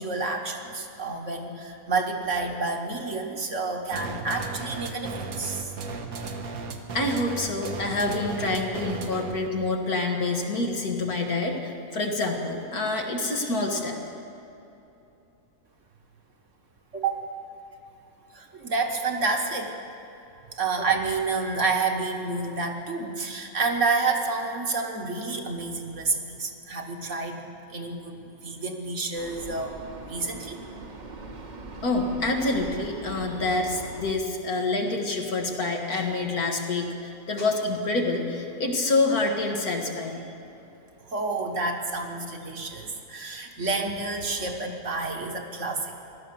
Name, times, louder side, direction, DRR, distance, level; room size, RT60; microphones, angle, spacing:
voice 1, 0.0-5.7 16.9-17.2 18.3-19.7 20.5-27.4 27.7-29.8 30.0-30.6 41.1-45.9, right 3 dB, 55° right, 3 dB, 1.6 m, -29 dB
sound 1, 3.9-9.5, right 4 dB, 75° right, 1.6 m, -35 dB
voice 2, 6.9-14.0 31.8-40.2, left 2 dB, 80° left, 2 dB, 2.2 m, -27 dB
Vehicle, 29.1-34.1, right 2 dB, 35° right, 1.0 m, -41 dB
16.5 x 12.0 x 6.9 m, 2.9 s
omnidirectional pair, 1.6 m